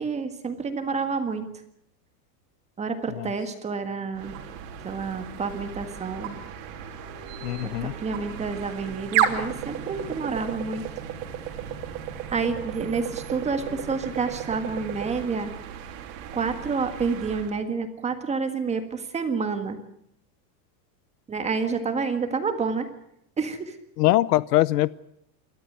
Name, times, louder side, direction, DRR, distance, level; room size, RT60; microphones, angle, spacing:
voice 1, 0.0-1.4 2.8-4.3 4.8-6.4 7.6-10.8 12.3-15.5 16.3-19.8 21.3-22.9 23.4-23.8, right 5 dB, 15° right, 8 dB, 1.6 m, -29 dB
sound 1, 4.1-17.6, right 10 dB, 50° right, 3.3 m, -33 dB
sound 2, 6.6-14.5, left 4 dB, 10° left, 6.6 m, -49 dB
voice 2, 7.4-7.9 24.0-24.9, left 16 dB, 65° left, 19 dB, 0.8 m, -22 dB
28.0 x 13.0 x 9.3 m, 0.77 s
supercardioid pair, 165°, 50 cm